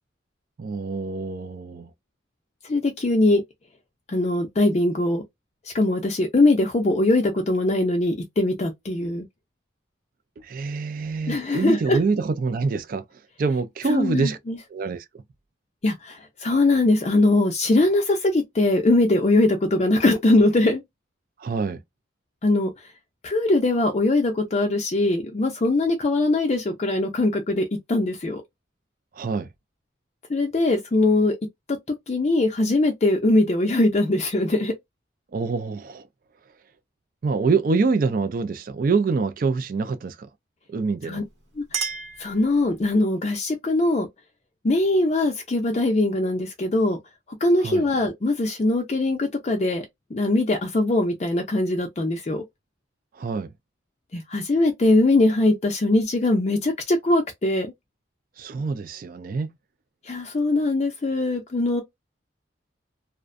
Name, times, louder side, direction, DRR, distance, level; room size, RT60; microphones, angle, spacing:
voice 1, 0.6-1.9 10.4-13.0 13.4-14.4 14.7-15.0 21.4-21.8 29.2-29.5 35.3-36.1 37.2-40.3 40.7-41.2 47.6-47.9 53.1-53.5 58.4-59.5, right 4 dB, 45° right, 0.3 m, -25 dB
voice 2, 2.6-3.4 4.1-5.2 5.7-9.3 11.3-12.0 13.9-14.6 15.8-20.8 22.4-22.7 23.2-28.4 30.3-31.4 32.1-34.7 41.0-41.2 41.6-41.7 42.2-44.1 44.6-47.0 47.4-49.9 50.1-52.4 54.1-57.7 60.0-61.8, left 2 dB, 35° left, 0.4 m, -21 dB
Chink clink, 41.2-43.0, right 6 dB, 80° right, 1.0 m, -34 dB
2.4 x 2.1 x 2.4 m
head